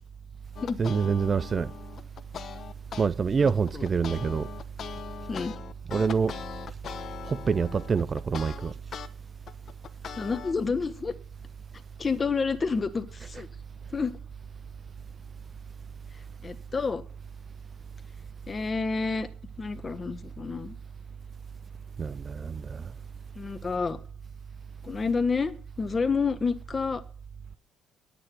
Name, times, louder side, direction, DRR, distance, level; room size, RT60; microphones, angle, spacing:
sound 1, 0.6-3.1 3.5-9.1 9.5-10.5, left 8 dB, 50° left, 1.0 m, -40 dB
voice 1, 0.8-1.7 3.0-4.5 5.9-6.3 7.3-8.7 22.0-22.9, right 5 dB, 35° right, 0.5 m, -26 dB
voice 2, 3.4-3.8 5.3-5.5 10.2-11.1 12.0-13.5 13.9-14.2 16.4-17.0 18.5-19.3 19.6-20.8 23.3-24.0 24.8-27.0, left 4 dB, 30° left, 1.3 m, -29 dB
9.9 x 9.0 x 7.7 m
cardioid pair, 110°, 0 cm